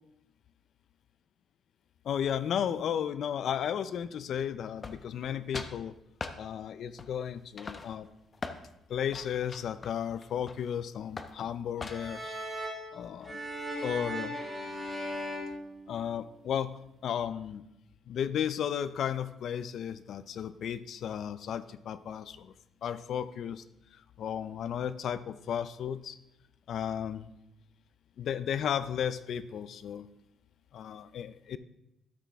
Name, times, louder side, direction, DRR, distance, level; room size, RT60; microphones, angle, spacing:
voice 1, 2.0-5.9 6.4-8.1 8.9-12.3 12.9-13.4 13.8-14.4 15.9-16.7 17.0-17.6 18.1-22.5 22.8-23.6 23.9-26.2 26.7-27.3 28.2-30.1 30.7-31.6, left 9 dB, 70° left, 14 dB, 0.5 m, -34 dB
sound 1, 4.8-5.3 5.5-5.8 6.2-6.4 7.0-7.3 7.6-8.6 9.1-10.7 11.2-11.4 11.8-12.2, left 4 dB, 35° left, 0.8 m, -41 dB
sound 2, 11.8-16.4, equal, 15° right, 2.7 m, -38 dB
12.5 x 6.2 x 3.5 m, 0.84 s
cardioid pair, 90°, 0 cm